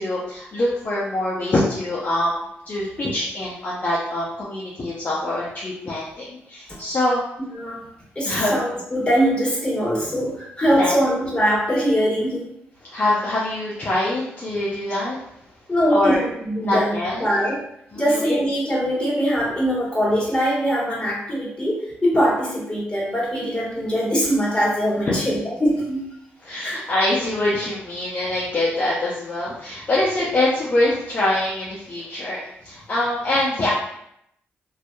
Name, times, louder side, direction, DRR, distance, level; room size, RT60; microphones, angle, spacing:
voice 1, 0.0-2.4 2.7-7.2 8.3-8.5 10.8-10.9 12.9-15.2 15.9-16.2 16.6-17.2 17.9-18.2 25.0-25.1 26.4-33.7, left 1 dB, 45° left, -7 dB, 0.6 m, -24 dB
voice 2, 8.1-12.5 15.7-17.6 17.9-26.0 26.6-26.8, equal, 20° left, -7 dB, 1.4 m, -22 dB
2.6 x 2.3 x 2.2 m, 0.77 s
cardioid pair, 70°, 5 cm